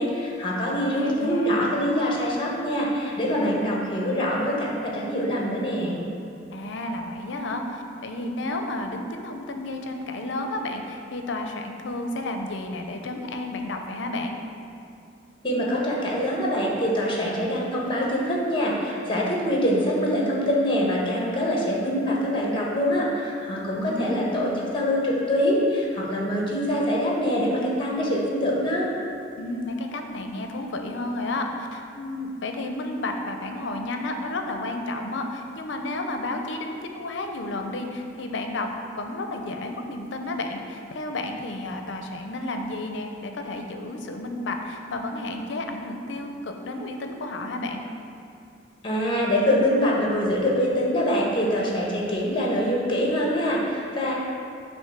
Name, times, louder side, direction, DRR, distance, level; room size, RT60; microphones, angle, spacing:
voice 1, 0.0-6.0 15.4-24.5 24.7-28.9 48.8-54.1, equal, 25° left, -3 dB, 1.3 m, -24 dB
voice 2, 0.7-1.8 6.5-14.4 23.7-24.6 29.4-38.7 39.0-47.8, left 2 dB, 70° left, 4 dB, 0.6 m, -32 dB
7.7 x 3.1 x 5.8 m, 2.5 s
head